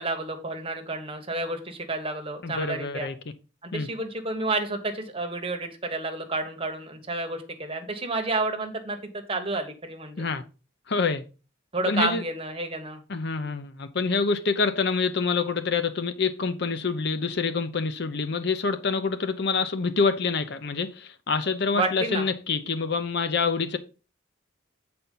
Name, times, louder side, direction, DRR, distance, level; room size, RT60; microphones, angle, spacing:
voice 1, 0.0-3.1 3.6-10.2 11.7-13.0 21.7-22.2, right 2 dB, 30° right, 1.3 m, -30 dB
voice 2, 2.4-3.1 3.7-3.9 10.2-10.4 10.9-11.2 11.9-12.2 13.1-23.8, left 4 dB, 60° left, 0.7 m, -26 dB
8.0 x 4.3 x 5.4 m
head